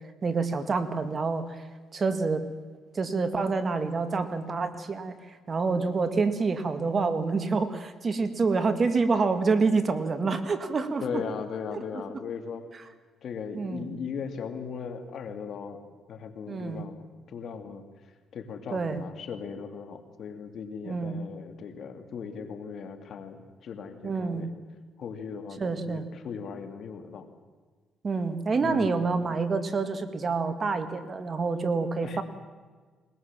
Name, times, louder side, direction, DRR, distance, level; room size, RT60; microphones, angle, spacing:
voice 1, 0.2-1.6 1.9-2.4 2.9-11.0 11.7-11.8 13.5-13.9 16.5-16.8 18.7-19.0 20.9-21.2 24.0-24.5 25.6-26.0 28.0-32.2, right 4 dB, 40° right, 9 dB, 1.9 m, -27 dB
voice 2, 11.0-12.7 13.2-15.8 16.1-17.8 18.3-24.5 25.0-27.3 28.6-29.0 32.0-32.2, left 6 dB, 65° left, 6 dB, 2.6 m, -38 dB
21.0 x 20.5 x 7.5 m, 1.5 s
cardioid pair, 90°, 0 cm